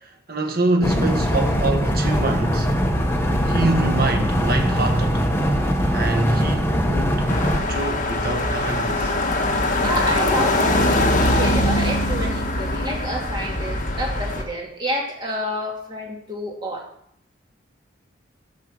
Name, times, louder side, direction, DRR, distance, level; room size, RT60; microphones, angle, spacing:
voice 1, 0.0-2.8 3.5-5.3 5.9-7.3 7.7-9.1, right 2 dB, 50° right, 1.7 m, -25 dB
sound 1, 0.8-7.6, equal, 10° left, 1.1 m, -21 dB
sound 2, 7.3-14.4, left 1 dB, 40° left, 1.4 m, -22 dB
voice 2, 9.5-16.9, equal, 25° right, 2.5 m, -29 dB
13.0 x 6.6 x 6.2 m
head